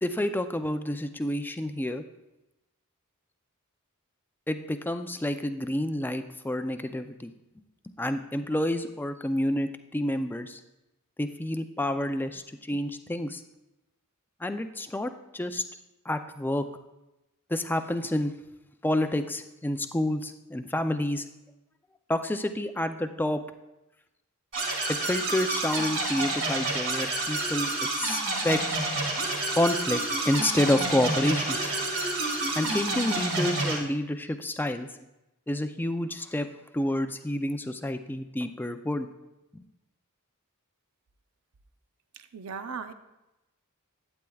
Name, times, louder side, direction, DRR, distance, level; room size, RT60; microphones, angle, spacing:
voice 1, 0.0-2.0 4.5-7.3 8.0-10.6 11.2-13.4 14.4-15.6 16.1-16.6 17.5-18.3 18.8-21.2 22.1-23.4 24.9-27.7 28.0-28.6 29.5-31.7 32.6-34.9 35.5-36.5 36.7-39.1 39.5-39.6, left 1 dB, 10° left, 8 dB, 0.4 m, -29 dB
sound 1, 24.5-33.8, right 2 dB, 60° right, 2.4 m, -29 dB
voice 2, 42.1-42.9, right 5 dB, 75° right, 10 dB, 0.6 m, -38 dB
11.5 x 8.9 x 2.3 m, 0.95 s
head